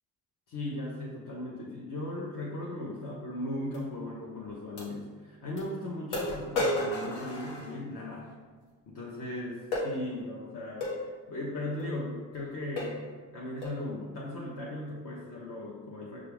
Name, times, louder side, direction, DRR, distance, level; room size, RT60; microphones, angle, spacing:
voice 1, 0.5-8.3 8.9-13.0 13.3-16.2, left 1 dB, 45° left, -4 dB, 0.9 m, -37 dB
sound 1, 3.7-3.8 4.8-4.9 5.6-5.7 6.1-8.1 9.7-9.9 10.8-11.0 11.8-11.9 12.3-12.5 12.8-13.1 13.6-13.8, left 1 dB, 80° left, 1.0 m, -32 dB
5.5 x 2.4 x 3.4 m, 1.5 s
hypercardioid pair, 45°, 43 cm